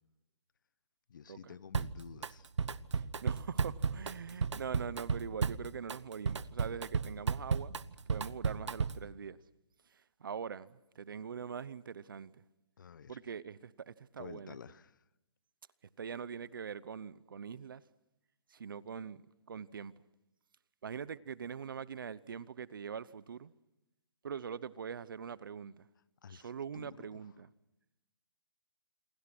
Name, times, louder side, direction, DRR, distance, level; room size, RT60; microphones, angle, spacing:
voice 1, 1.1-2.5 12.8-13.2 14.2-15.0 26.2-27.2, left 7 dB, 45° left, 1.0 m, -51 dB
Drum kit, 1.7-2.3 2.6-9.1, right 5 dB, 80° right, 1.0 m, -34 dB
voice 2, 2.9-7.8 8.1-9.4 9.9-12.4 13.1-14.6 16.0-17.8 18.5-19.2 19.5-19.9 20.8-23.5 24.2-25.9 26.3-27.5, right 7 dB, 45° right, 0.8 m, -43 dB
28.0 x 23.5 x 6.1 m
hypercardioid pair, 175°, 15 cm